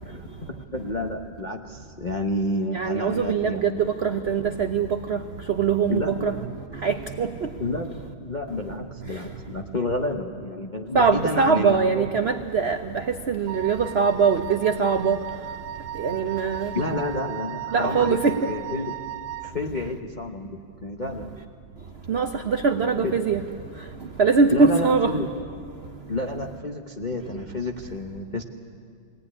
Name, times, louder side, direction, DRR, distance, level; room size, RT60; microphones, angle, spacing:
voice 1, 0.0-3.8 5.9-6.4 7.6-12.1 16.7-18.9 19.4-21.4 23.0-23.1 24.5-25.3 26.1-28.4, left 2 dB, 40° left, 2 dB, 0.6 m, -30 dB
voice 2, 2.7-5.2 5.5-6.3 6.8-7.5 10.9-15.2 15.9-16.7 17.7-18.5 22.1-23.4 24.2-25.2, right 5 dB, 65° right, 7 dB, 0.6 m, -22 dB
Wind instrument woodwind instrument, 13.5-19.6, right 13 dB, 85° right, 1.5 m, -36 dB
22.0 x 17.5 x 9.8 m, 2.2 s
omnidirectional pair, 2.1 m